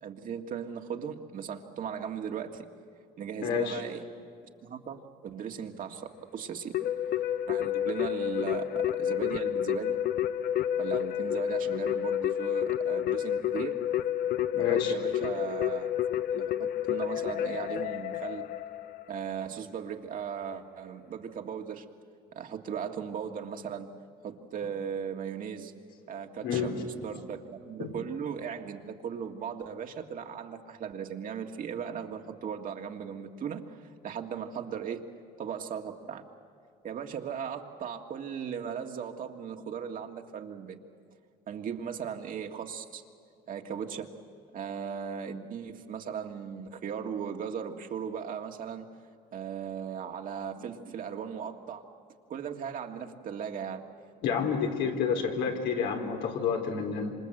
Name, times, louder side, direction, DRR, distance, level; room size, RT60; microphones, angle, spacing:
voice 1, 0.0-2.7 3.2-4.0 4.6-6.7 7.5-10.0 10.8-13.8 14.5-15.9 16.3-18.5 19.1-21.8 22.3-23.9 24.2-25.7 26.1-35.0 35.4-36.3 36.8-40.8 41.5-43.0 43.5-44.1 44.5-48.9 49.3-51.9 52.3-53.8, right 7 dB, 55° right, 4 dB, 1.9 m, -37 dB
voice 2, 3.4-3.8 14.5-14.9 26.4-26.8 27.8-27.9 54.2-57.1, left 6 dB, 85° left, 2 dB, 3.7 m, -29 dB
Keyboard (musical), 6.7-19.2, left 10 dB, 65° left, 0.9 m, -30 dB
27.0 x 26.5 x 7.9 m, 2.3 s
cardioid pair, 110°, 17 cm